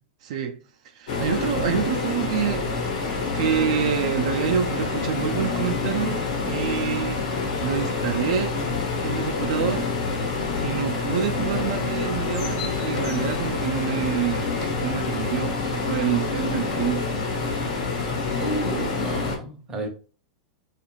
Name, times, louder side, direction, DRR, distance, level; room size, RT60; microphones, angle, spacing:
voice 1, 0.2-0.6 0.8-2.7 3.3-7.2 7.6-8.6 9.0-9.9 10.6-14.5 14.8-17.1, right 8 dB, 60° right, 0.3 m, -27 dB
sound 1, 1.1-19.4, left 4 dB, 85° left, 1.1 m, -27 dB
sound 2, 5.1-15.5, left 6 dB, 45° left, 0.5 m, -41 dB
sound 3, 13.0-13.4 13.8-15.3 15.7-16.4 16.7-17.0, left 3 dB, 65° left, 0.8 m, -43 dB
voice 2, 18.4-19.9, right 2 dB, 15° right, 0.6 m, -30 dB
2.5 x 2.4 x 3.0 m
supercardioid pair, 155°, 4 cm